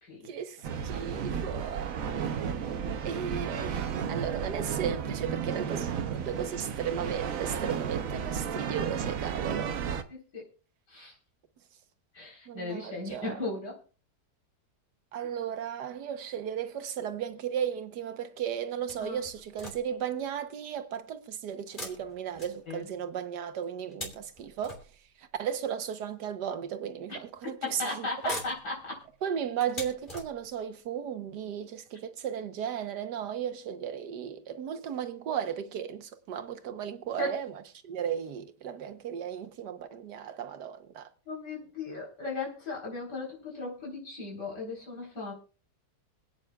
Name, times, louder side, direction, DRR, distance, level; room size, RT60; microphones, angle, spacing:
voice 1, 0.2-2.7 3.0-9.7 12.5-13.4 15.1-24.8 25.2-28.1 29.2-41.1, right 8 dB, 85° right, 1.5 m, -35 dB
sound 1, 0.6-10.0, right 7 dB, 60° right, 1.2 m, -33 dB
voice 2, 2.0-2.6 6.2-6.3 10.1-10.5 10.9-11.1 12.1-13.8 19.0-19.2 22.7-22.9 27.6-29.0 37.2-37.3 41.3-45.3, left 2 dB, 85° left, 4.6 m, -37 dB
sound 2, 18.9-20.1 21.7-23.1 23.6-25.3 26.2-26.3 27.4-27.8 28.1-30.7 31.4-31.5 31.9-32.0, left 1 dB, 30° left, 3.2 m, -44 dB
25.5 x 9.0 x 2.3 m
omnidirectional pair, 1.7 m